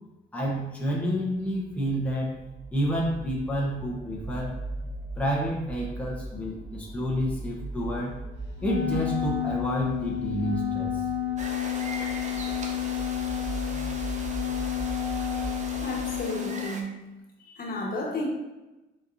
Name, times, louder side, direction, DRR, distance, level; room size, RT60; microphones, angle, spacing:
voice 1, 0.3-2.4 2.7-4.5 5.2-8.2 8.6-11.0, equal, 5° left, -4 dB, 0.9 m, -29 dB
sound 1, 1.5-16.2, right 2 dB, 75° right, 0.9 m, -39 dB
Wind instrument woodwind instrument, 8.6-16.7, left 13 dB, 70° left, 1.1 m, -31 dB
sound 2, 11.4-16.8, right 2 dB, 35° right, 0.7 m, -39 dB
voice 2, 15.8-16.9 17.4-18.3, left 1 dB, 45° left, -2 dB, 1.3 m, -32 dB
4.3 x 4.1 x 2.6 m, 1.1 s
cardioid pair, 90°, 20 cm